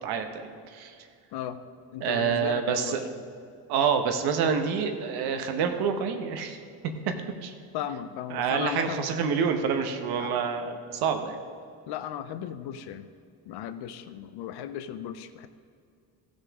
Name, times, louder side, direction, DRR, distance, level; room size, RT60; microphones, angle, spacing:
voice 1, 0.0-0.9 2.0-3.1 3.7-6.6 7.4-7.5 8.3-11.4, right 6 dB, 75° right, 6 dB, 1.1 m, -27 dB
voice 2, 1.9-3.0 7.7-9.0 10.2-10.3 11.9-13.1 13.5-15.5, left 10 dB, 80° left, 11 dB, 0.6 m, -36 dB
15.5 x 6.5 x 3.6 m, 2.4 s
cardioid pair, 170°, 39 cm